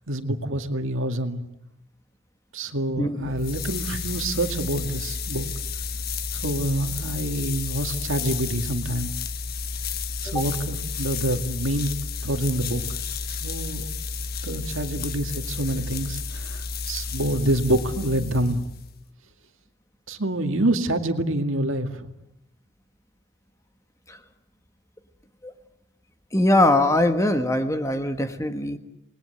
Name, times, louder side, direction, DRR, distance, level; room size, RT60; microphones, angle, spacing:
voice 1, 0.1-1.4 2.5-5.5 6.3-9.1 10.2-11.9 12.2-12.8 13.3-13.9 14.4-18.7 20.1-22.1, right 1 dB, 65° right, 6 dB, 2.2 m, -26 dB
voice 2, 3.0-3.3 10.3-10.4 24.1-24.2 25.4-25.5 26.3-28.8, left 1 dB, 15° left, 7 dB, 1.4 m, -22 dB
sound 1, 3.2-19.0, left 5 dB, 45° left, 1.4 m, -32 dB
28.5 x 21.0 x 7.9 m, 0.83 s
head